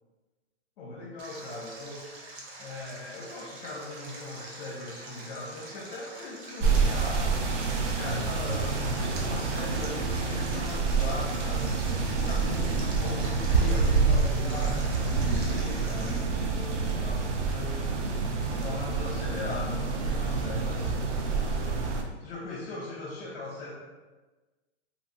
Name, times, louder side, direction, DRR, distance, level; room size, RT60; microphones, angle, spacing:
voice 1, 0.8-7.7 8.0-18.1 18.4-21.8 22.2-23.7, left 2 dB, 55° left, -4 dB, 0.6 m, -40 dB
Stream, 1.2-16.2, right 2 dB, 60° right, 0.8 m, -45 dB
sound 1, 6.6-22.0, right 4 dB, 90° right, 0.5 m, -27 dB
2.9 x 2.5 x 2.5 m, 1.2 s
hypercardioid pair, 140°, 35 cm